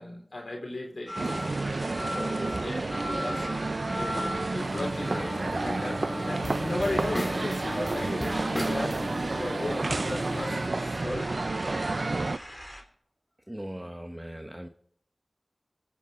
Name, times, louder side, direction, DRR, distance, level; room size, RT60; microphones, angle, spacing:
voice 1, 0.0-1.6 2.0-3.4 3.9-9.0 9.3-11.3, left 1 dB, 75° left, 3.4 m, -36 dB
sound 1, 1.1-12.8, equal, 10° left, 3.3 m, -41 dB
sound 2, 1.1-12.4, right 3 dB, 80° right, 0.4 m, -30 dB
sound 3, 4.6-10.7, left 1 dB, 25° left, 2.2 m, -36 dB
voice 2, 13.5-14.7, right 1 dB, 20° right, 0.9 m, -39 dB
24.0 x 8.4 x 3.8 m
wide cardioid pair, 45°, 0 cm